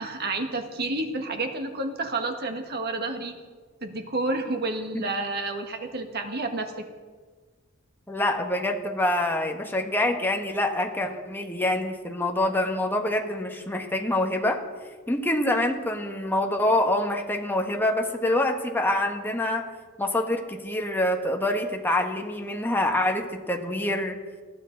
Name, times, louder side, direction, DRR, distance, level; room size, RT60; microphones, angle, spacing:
voice 1, 0.0-3.4 3.8-6.9, right 2 dB, 50° right, 5 dB, 1.6 m, -30 dB
voice 2, 8.1-14.6 15.1-19.6 20.0-24.2, left 1 dB, 10° left, 3 dB, 1.4 m, -26 dB
20.0 x 13.5 x 4.0 m, 1.4 s
head